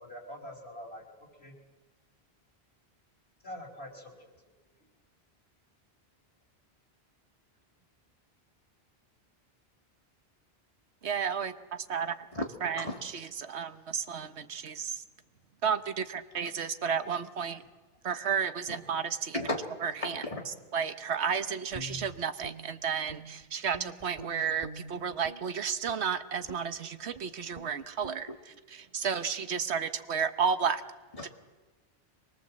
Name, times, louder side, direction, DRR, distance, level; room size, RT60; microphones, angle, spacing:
voice 1, 0.0-1.6 3.4-4.3 4.6-4.9, equal, 70° left, 5.2 m, -45 dB
voice 2, 11.0-12.2 12.6-12.8 13.4-15.0 15.6-17.6 18.0-19.3 20.7-28.3 28.9-30.8, right 6 dB, 90° right, 1.3 m, -32 dB
voice 3, 12.8-13.2 16.4-16.6 17.6-17.7 18.7-18.8 19.3-19.7 20.0-20.5 28.3-28.4 31.1-31.3, left 1 dB, 35° left, 2.7 m, -36 dB
Guitar, 21.7-23.4 23.7-25.4 25.8-26.1 26.5-26.7 27.1-27.3 27.5-27.7 28.0-28.2, right 2 dB, 40° right, 1.8 m, -45 dB
24.5 x 21.5 x 7.6 m
omnidirectional pair, 1.1 m